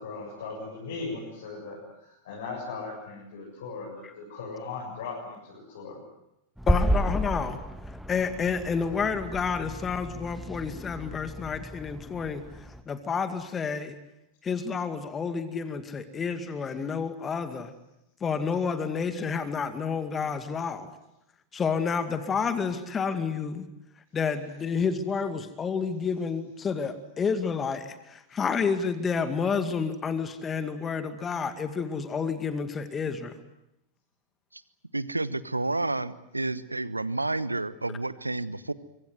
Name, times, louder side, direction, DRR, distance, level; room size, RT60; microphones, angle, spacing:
voice 1, 0.0-6.0, left 4 dB, 60° left, -3 dB, 7.8 m, -38 dB
voice 2, 6.6-7.6 8.1-12.4 12.9-13.9 14.4-17.7 18.2-21.0 21.5-23.7 24.1-33.4, left 5 dB, 20° left, 9 dB, 2.2 m, -30 dB
sound 1, 6.6-12.8, equal, ahead, 1.6 m, -32 dB
voice 3, 34.9-38.7, right 2 dB, 85° right, 17 dB, 1.1 m, -30 dB
25.5 x 24.5 x 7.9 m, 0.86 s
figure-of-eight pair, 90°, 0 cm